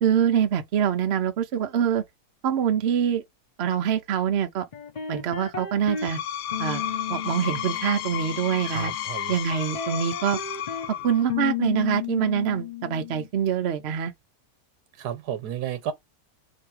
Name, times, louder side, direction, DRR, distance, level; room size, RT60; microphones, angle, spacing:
voice 1, 0.0-2.0 2.4-3.2 3.6-4.6 5.1-6.2 6.6-6.8 7.1-8.9 9.3-10.4 11.0-14.1, right 8 dB, 60° right, 0.7 m, -24 dB
sound 1, 4.7-6.1 6.5-9.0 9.5-10.9 11.3-13.3, left 8 dB, 35° left, 0.7 m, -34 dB
Screech, 5.8-11.3, left 11 dB, 70° left, 1.0 m, -32 dB
voice 2, 8.6-9.3 15.0-15.9, right 9 dB, 80° right, 1.3 m, -32 dB
3.2 x 2.9 x 4.6 m
omnidirectional pair, 1.7 m